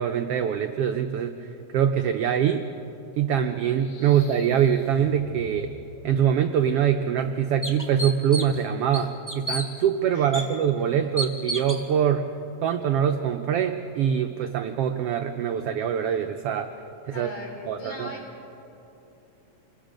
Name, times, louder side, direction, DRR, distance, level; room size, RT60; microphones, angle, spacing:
voice 1, 0.0-1.3 1.7-2.6 3.2-5.7 6.0-12.3 12.6-16.7 17.1-17.3 17.7-18.1, right 8 dB, 90° right, 6 dB, 1.3 m, -24 dB
sound 1, 3.5-6.4, left 2 dB, 50° left, 2.1 m, -45 dB
sound 2, 6.6-6.7 7.2-7.3 7.6-8.6 8.9-9.7 10.3-10.4 11.2-11.8, right 1 dB, 10° left, 1.0 m, -30 dB
voice 2, 10.1-10.6 17.1-18.2, left 2 dB, 85° left, -2 dB, 5.9 m, -40 dB
27.5 x 20.5 x 5.2 m, 3.0 s
omnidirectional pair, 3.6 m